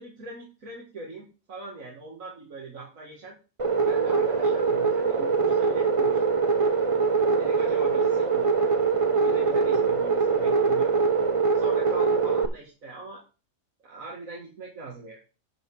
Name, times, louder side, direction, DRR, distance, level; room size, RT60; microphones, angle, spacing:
voice 1, 0.0-3.4 3.8-6.3 7.3-8.4 9.1-11.0 11.5-13.2 13.8-15.2, right 2 dB, 80° right, -3 dB, 2.4 m, -41 dB
sound 1, 3.6-12.5, right 5 dB, 30° right, 0.8 m, -23 dB
10.5 x 4.9 x 5.4 m, 0.33 s
omnidirectional pair, 1.4 m